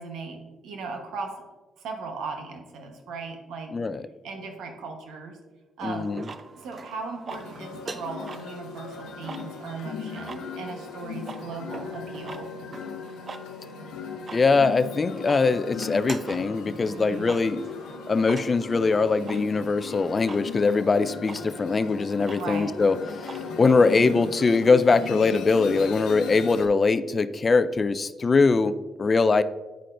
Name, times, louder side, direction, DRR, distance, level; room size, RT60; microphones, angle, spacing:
voice 1, 0.0-1.4 1.8-3.7 4.2-5.4 5.8-6.2 6.6-12.5 16.9-17.3 22.3-22.7, right 4 dB, 80° right, 3 dB, 1.0 m, -37 dB
voice 2, 3.7-4.0 5.8-6.3 14.3-17.6 18.1-23.0 23.2-29.4, left 4 dB, 35° left, 12 dB, 0.3 m, -22 dB
sound 1, 5.8-24.1, right 4 dB, 40° right, 0.4 m, -44 dB
sound 2, 7.3-26.7, left 6 dB, 90° left, 0.6 m, -38 dB
10.5 x 4.5 x 2.5 m, 1.2 s
cardioid pair, 90°, 0 cm